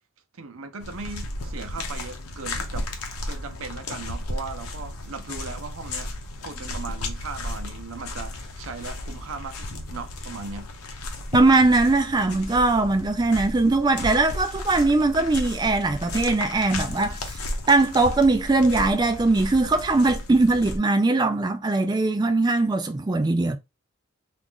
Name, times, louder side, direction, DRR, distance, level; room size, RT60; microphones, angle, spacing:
voice 1, 0.3-2.9 3.2-6.1 6.4-10.7, right 4 dB, 70° right, 0.6 m, -38 dB
sound 1, 0.8-20.8, left 1 dB, 85° left, 0.8 m, -34 dB
voice 2, 11.3-17.4 17.7-23.6, right 2 dB, 20° right, 0.3 m, -21 dB
2.9 x 2.5 x 3.7 m
head